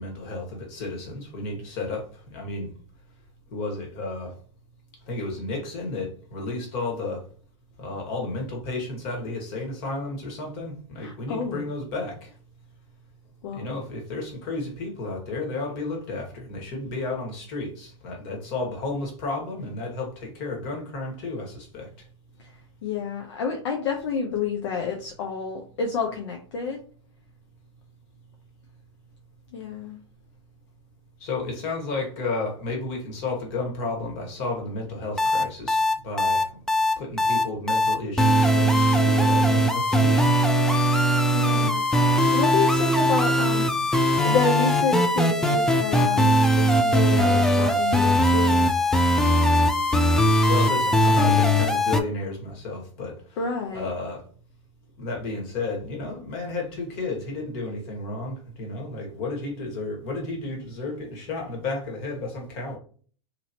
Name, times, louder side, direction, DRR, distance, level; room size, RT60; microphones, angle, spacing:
voice 1, 0.0-2.7 3.5-4.4 5.0-7.2 7.8-12.3 13.5-22.1 31.2-36.6 37.0-40.5 50.4-53.4 53.7-54.3 55.0-62.8, left 2 dB, 50° left, 1.6 m, -32 dB
voice 2, 11.0-11.7 13.4-13.7 22.4-26.8 29.5-30.0 41.3-43.9 44.2-48.7 53.4-53.9, left 5 dB, 65° left, 0.7 m, -29 dB
sound 1, 35.2-52.0, equal, 5° left, 0.4 m, -20 dB
2.9 x 2.7 x 2.8 m
hypercardioid pair, 105°, 16 cm